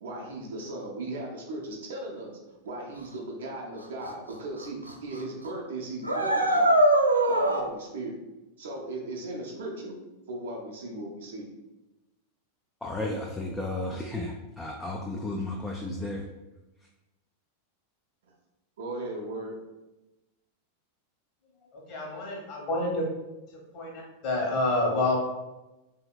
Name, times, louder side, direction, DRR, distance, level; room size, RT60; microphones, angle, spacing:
voice 1, 0.0-2.4 2.6-6.8 7.3-8.1 8.6-10.0 10.3-11.5 18.8-19.5, right 2 dB, 60° right, -1 dB, 0.7 m, -37 dB
sound 1, 4.1-4.2 4.6-4.9 5.2-5.3 6.0-7.6, right 1 dB, 85° right, 0.3 m, -22 dB
voice 2, 12.8-16.2, left 2 dB, 10° left, -1 dB, 0.4 m, -33 dB
voice 3, 21.9-23.0 23.7-25.2, left 2 dB, 40° left, -2 dB, 1.2 m, -28 dB
3.5 x 2.8 x 2.3 m, 1.0 s
figure-of-eight pair, 90°, 0 cm